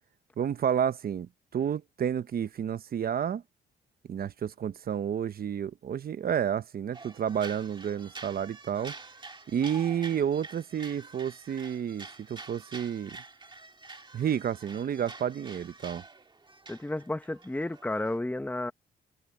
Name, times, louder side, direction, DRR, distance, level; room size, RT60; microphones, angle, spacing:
voice 1, 0.4-3.4 4.1-8.9 9.5-13.2 14.1-16.0, right 8 dB, 50° right, 0.9 m, -30 dB
sound 1, 6.9-18.2, right 3 dB, 25° right, 1.9 m, -47 dB
voice 2, 16.7-18.7, left 1 dB, 10° left, 1.0 m, -32 dB
cardioid pair, 90°, 20 cm